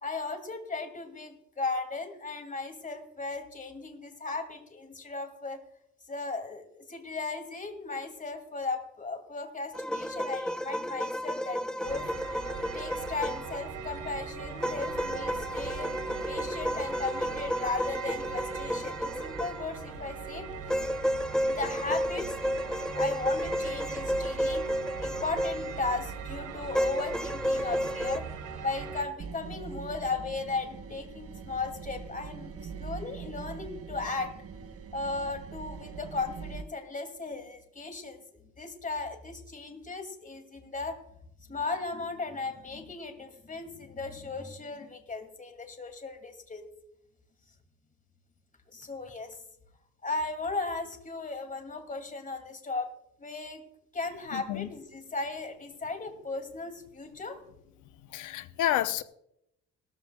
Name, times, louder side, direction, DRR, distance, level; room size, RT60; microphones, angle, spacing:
voice 1, 0.0-5.6 6.1-12.1 12.7-15.9 16.2-20.5 21.5-22.5 22.9-24.7 25.0-28.2 28.6-34.3 34.9-41.0 41.5-46.7 48.7-49.3 50.0-52.9 53.2-53.6 53.9-57.4, left 3 dB, 25° left, 2.4 m, -36 dB
sound 1, 9.7-13.6 14.6-19.9 20.7-25.9 26.7-28.2, equal, ahead, 0.7 m, -32 dB
sound 2, 11.8-29.0, right 5 dB, 80° right, 3.1 m, -40 dB
sound 3, 29.2-36.6, right 6 dB, 50° right, 1.1 m, -42 dB
voice 2, 54.3-54.7 58.1-59.0, left 12 dB, 85° left, 0.8 m, -29 dB
18.0 x 14.0 x 2.3 m
cardioid pair, 90°, 30 cm